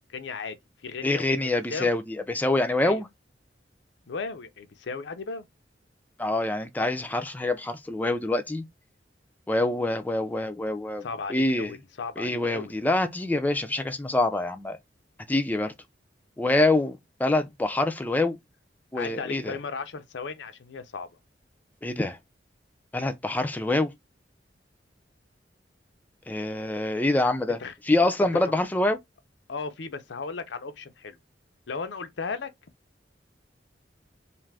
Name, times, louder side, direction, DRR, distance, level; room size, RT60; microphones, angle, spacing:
voice 1, 0.1-0.6 0.8-1.9 2.8-3.0 4.1-5.4 11.0-12.7 19.0-21.1 27.5-27.7 29.5-31.2 31.7-32.5, left 4 dB, 85° left, 0.5 m, -36 dB
voice 2, 1.0-3.1 6.2-8.6 9.5-11.0 11.3-11.7 12.2-14.8 15.3-15.7 16.4-18.4 18.9-19.6 21.8-22.2 22.9-23.9 26.3-27.6 27.8-29.0, left 2 dB, 10° left, 0.4 m, -25 dB
2.5 x 2.4 x 3.2 m
head